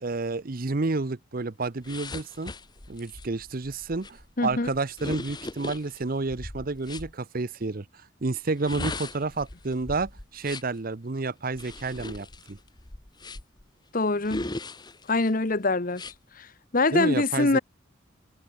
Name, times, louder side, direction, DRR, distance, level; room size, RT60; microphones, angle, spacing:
voice 1, 0.0-2.5 2.9-12.6 16.9-17.6, right 3 dB, 45° right, 0.8 m, -30 dB
sound 1, 1.8-7.1 8.5-10.8 11.5-13.6 14.2-15.3 15.9-16.1, left 2 dB, 20° left, 1.1 m, -39 dB
voice 2, 4.4-4.7 13.9-14.5 15.1-16.0 16.4-16.5 16.7-17.6, left 3 dB, 45° left, 1.1 m, -24 dB
head